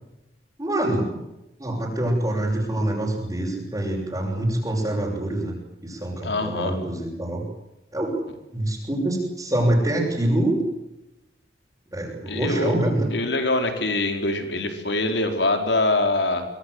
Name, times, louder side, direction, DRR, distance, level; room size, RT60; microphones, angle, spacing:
voice 1, 0.6-1.2 1.6-5.6 5.8-7.4 7.9-8.2 8.5-10.6 11.9-13.1, right 1 dB, 20° right, -4 dB, 6.5 m, -25 dB
voice 2, 6.2-6.8 12.3-12.8 13.1-16.5, left 2 dB, 85° left, 5 dB, 4.6 m, -24 dB
25.0 x 24.0 x 8.1 m, 0.94 s
head